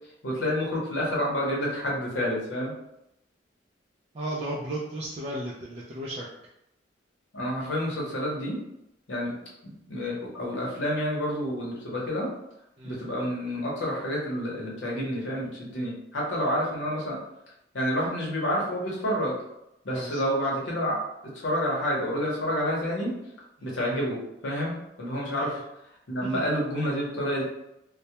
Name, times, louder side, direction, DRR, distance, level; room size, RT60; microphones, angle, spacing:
voice 1, 0.2-2.7 7.3-8.6 9.1-9.3 9.6-12.3 12.8-17.2 17.7-19.4 19.8-21.0 21.3-23.1 23.6-25.6 26.1-27.4, equal, 85° left, -3 dB, 0.8 m, -29 dB
voice 2, 4.1-6.3 12.8-13.0 19.9-20.3 23.6-23.7 25.3-25.6 26.2-26.3, right 1 dB, 35° right, -5 dB, 0.3 m, -35 dB
2.2 x 2.1 x 2.8 m, 0.85 s
head